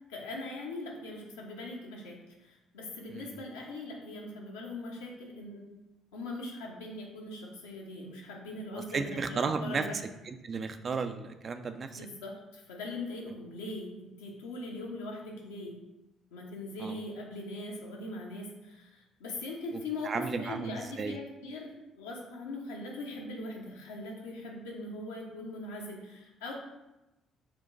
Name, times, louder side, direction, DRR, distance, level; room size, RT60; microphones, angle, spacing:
voice 1, 0.1-5.7 6.1-10.0 12.0-15.7 16.3-26.5, left 2 dB, 75° left, -1 dB, 0.7 m, -41 dB
voice 2, 8.7-9.9 10.2-12.1 16.8-17.0 20.0-21.2, right 5 dB, 40° right, 8 dB, 0.3 m, -34 dB
4.4 x 2.2 x 3.8 m, 0.97 s
figure-of-eight pair, 45°, 0 cm